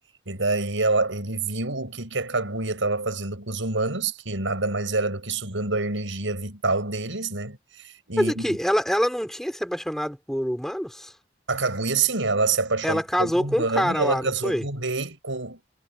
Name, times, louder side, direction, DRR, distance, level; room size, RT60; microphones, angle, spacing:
voice 1, 0.3-8.6 11.5-15.7, right 3 dB, 90° right, 6.5 m, -27 dB
voice 2, 8.2-11.1 12.8-14.6, equal, ahead, 6.5 m, -25 dB
head